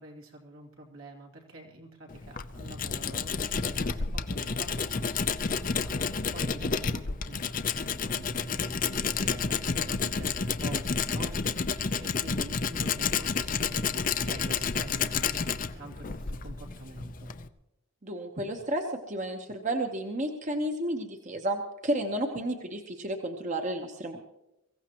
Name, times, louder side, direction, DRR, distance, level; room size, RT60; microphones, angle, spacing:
voice 1, 0.0-6.0 6.3-17.3, right 2 dB, 80° right, 0 dB, 2.8 m, -46 dB
Tools, 2.1-17.5, left 5 dB, 40° left, 0.6 m, -30 dB
voice 2, 18.0-24.2, right 1 dB, 35° right, 4 dB, 1.0 m, -32 dB
23.0 x 15.5 x 3.0 m, 0.91 s
head